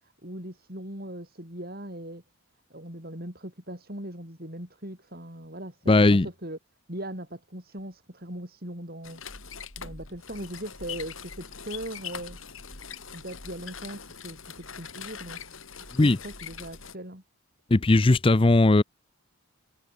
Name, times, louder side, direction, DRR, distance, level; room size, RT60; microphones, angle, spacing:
voice 1, 0.0-2.2 2.7-6.6 6.9-9.2 9.8-12.4 13.1-15.6 16.0-17.2, right 1 dB, 45° right, 7.8 m, -39 dB
voice 2, 5.9-6.3 16.0-16.2 17.7-18.8, left 2 dB, 25° left, 0.5 m, -18 dB
sound 1, 9.0-16.9, left 6 dB, 70° left, 6.6 m, -42 dB
head